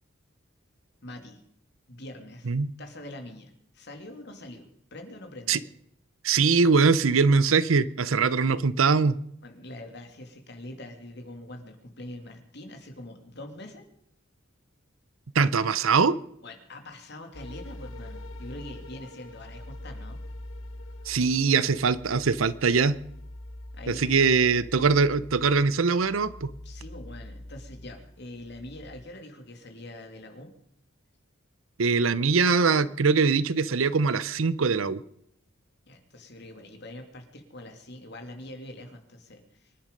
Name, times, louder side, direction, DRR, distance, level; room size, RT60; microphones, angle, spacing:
voice 1, 1.0-1.4 1.9-2.5 2.8-5.6 9.4-13.9 16.4-20.2 23.7-24.1 26.6-30.5 35.9-39.7, left 1 dB, 55° left, 5 dB, 2.6 m, -44 dB
voice 2, 6.2-9.2 15.3-16.2 21.1-23.0 23.9-26.5 31.8-35.0, right 4 dB, 80° right, 17 dB, 0.7 m, -22 dB
sound 1, 17.3-29.0, left 1 dB, 80° left, 1.5 m, -44 dB
25.0 x 10.5 x 5.3 m, 0.72 s
head